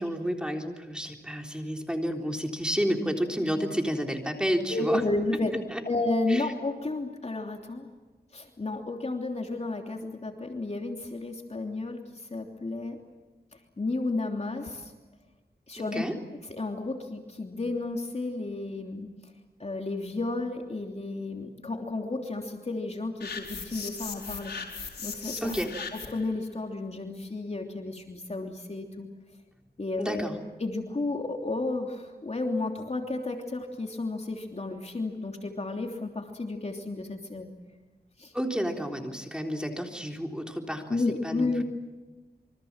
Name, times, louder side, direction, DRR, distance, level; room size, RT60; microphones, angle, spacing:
voice 1, 0.0-5.0 5.7-5.8 6.3-6.5 15.8-16.2 25.4-25.7 30.0-30.4 38.3-41.6, equal, 5° right, 2 dB, 3.8 m, -31 dB
voice 2, 4.7-5.6 5.8-7.9 8.3-13.0 13.5-14.9 15.7-16.0 16.5-19.1 19.6-24.5 25.0-25.5 25.9-29.1 29.8-30.3 30.6-37.5 38.2-38.3 40.9-41.6, left 2 dB, 40° left, 2 dB, 3.1 m, -32 dB
sound 1, 23.2-26.3, left 5 dB, 85° left, 5.1 m, -38 dB
27.5 x 25.0 x 7.4 m, 1.2 s
wide cardioid pair, 65°, 17 cm